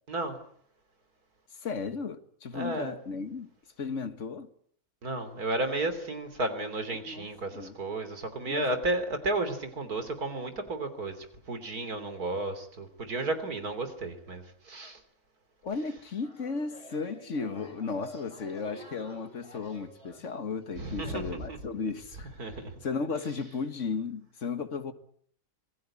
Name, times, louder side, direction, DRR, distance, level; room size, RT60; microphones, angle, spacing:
voice 1, 1.6-3.5 3.8-4.5 6.9-7.8 8.4-8.7 15.6-24.9, left 4 dB, 55° left, 2.0 m, -35 dB
voice 2, 2.5-2.9 5.0-15.0 20.8-21.2 22.4-22.7, right 2 dB, 85° right, 3.7 m, -33 dB
sound 1, 16.2-21.2, right 1 dB, 20° right, 4.6 m, -49 dB
26.5 x 19.5 x 8.6 m
omnidirectional pair, 1.6 m